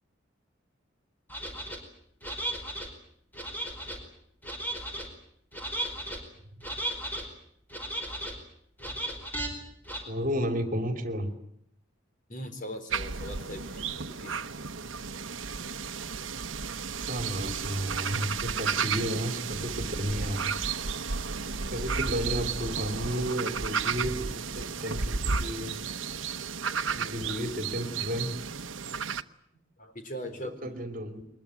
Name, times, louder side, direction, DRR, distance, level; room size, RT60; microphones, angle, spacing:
sound 1, 1.3-1.8 2.2-2.9 3.3-4.0 4.4-5.1 5.5-6.2 6.6-7.2 7.7-8.3 8.8-9.5 9.8-10.0, right 1 dB, 10° left, 5.0 m, -35 dB
voice 1, 10.1-11.3 17.0-20.5 21.7-25.7 26.9-28.4 30.6-31.3, equal, 45° right, 7 dB, 2.7 m, -33 dB
voice 2, 12.3-14.4 16.7-17.2 19.0-19.1 19.6-19.9 20.2-20.5 21.1-22.2 29.8-30.8, equal, 40° left, 7 dB, 3.9 m, -42 dB
sound 2, 12.9-29.2, right 5 dB, 75° right, 0.9 m, -33 dB
23.0 x 21.5 x 9.3 m, 0.70 s
head